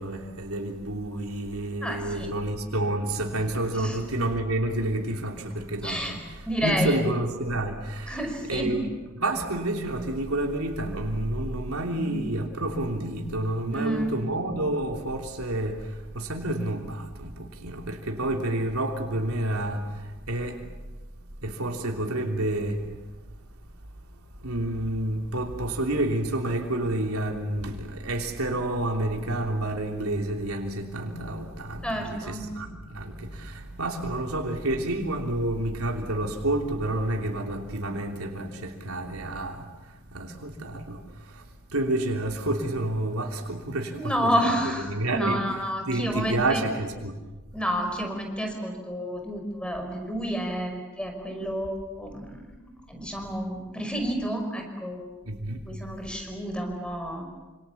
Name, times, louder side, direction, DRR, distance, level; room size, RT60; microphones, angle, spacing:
voice 1, 0.0-8.2 8.5-8.9 9.2-20.7 21.4-22.9 24.4-41.4 41.7-44.5 44.9-47.1 55.2-55.7, right 1 dB, 85° right, 2 dB, 3.2 m, -29 dB
voice 2, 1.8-2.3 3.7-4.0 5.8-6.1 6.4-7.0 8.1-8.8 13.6-14.2 31.8-32.5 43.9-46.6 47.5-52.5 52.9-55.2 55.7-57.2, equal, 5° left, 4 dB, 5.3 m, -30 dB
28.0 x 26.5 x 7.1 m, 1.2 s
head